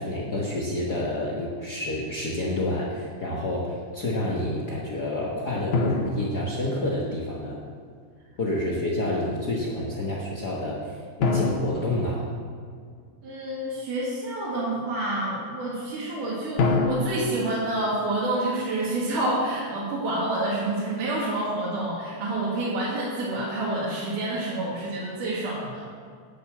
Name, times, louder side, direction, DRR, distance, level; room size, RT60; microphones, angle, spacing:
voice 1, 0.0-7.6 8.4-12.3, left 1 dB, 65° left, -3 dB, 0.9 m, -29 dB
sound 1, 5.7-7.3 11.2-13.1 16.6-18.8, left 3 dB, 85° left, 2.9 m, -28 dB
voice 2, 13.2-25.9, right 2 dB, 65° right, -7 dB, 3.4 m, -28 dB
10.5 x 7.1 x 7.7 m, 2.1 s
omnidirectional pair, 4.0 m